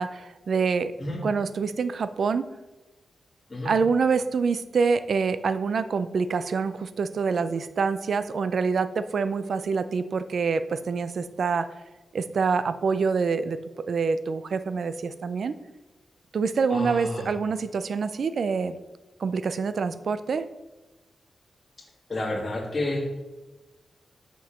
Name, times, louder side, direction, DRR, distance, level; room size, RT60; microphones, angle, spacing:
voice 1, 0.0-0.9 1.2-2.4 3.6-11.7 12.1-13.6 13.9-15.6 16.3-18.8 19.2-20.5, right 5 dB, 65° right, 12 dB, 0.4 m, -26 dB
voice 2, 16.7-17.3 22.1-23.0, left 1 dB, 25° left, -5 dB, 2.2 m, -30 dB
6.6 x 5.3 x 6.0 m, 1.1 s
wide cardioid pair, 125°, 0 cm